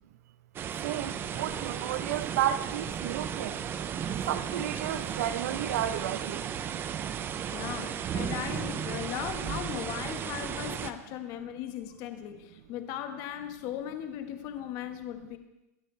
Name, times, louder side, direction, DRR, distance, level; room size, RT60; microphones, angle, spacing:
sound 1, 0.5-10.9, right 8 dB, 25° right, 0.8 m, -35 dB
voice 1, 0.8-3.6 4.3-6.4, right 11 dB, 70° right, 1.2 m, -32 dB
voice 2, 7.2-15.4, left 10 dB, 45° left, 1.8 m, -38 dB
26.5 x 13.5 x 3.5 m
supercardioid pair, 140°, 9 cm